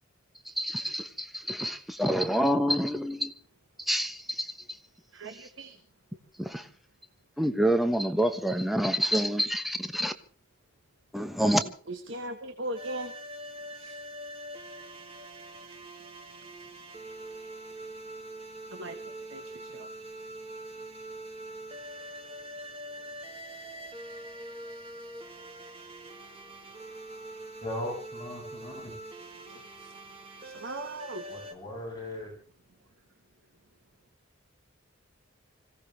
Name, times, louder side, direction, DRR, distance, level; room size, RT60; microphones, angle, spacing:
voice 1, 0.4-3.3 3.8-4.8 6.4-6.7 7.4-10.1 11.1-11.7, equal, ahead, 1.1 m, -27 dB
voice 2, 5.1-5.8 11.9-13.1 13.7-14.0 18.7-19.9 29.5-30.0 30.4-31.3, right 1 dB, 65° right, 1.4 m, -39 dB
sound 1, 12.8-31.5, right 1 dB, 30° right, 2.1 m, -43 dB
voice 3, 27.6-28.9 31.3-32.3, left 1 dB, 20° left, 7.8 m, -38 dB
25.5 x 16.5 x 3.3 m
head